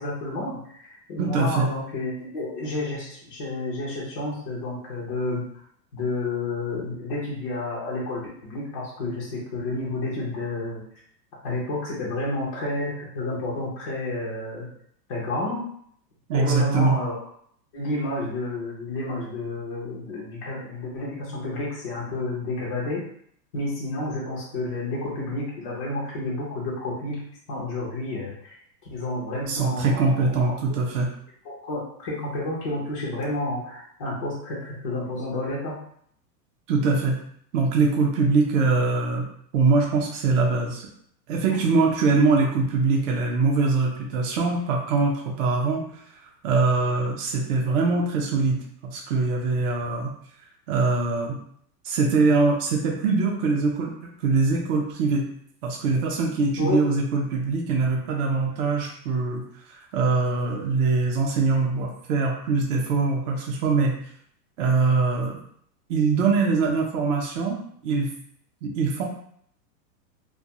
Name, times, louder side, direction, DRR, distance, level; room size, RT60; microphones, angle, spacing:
voice 1, 0.0-5.4 5.9-10.8 11.4-14.7 15.1-15.6 16.3-17.2 17.7-23.0 23.5-27.2 27.5-28.6 28.9-30.5 31.4-35.8 56.6-56.8, left 2 dB, 25° left, -6 dB, 0.3 m, -30 dB
voice 2, 1.2-1.7 16.3-17.0 29.5-31.1 36.7-37.2 37.5-39.3 39.5-40.8 41.3-45.8 46.4-48.6 48.8-50.1 50.7-51.4 51.8-53.9 54.2-55.3 55.6-59.4 59.9-63.9 64.6-65.4 65.9-68.1 68.6-69.0, right 4 dB, 50° right, 0 dB, 0.6 m, -23 dB
2.2 x 2.2 x 2.8 m, 0.65 s
hypercardioid pair, 140°, 49 cm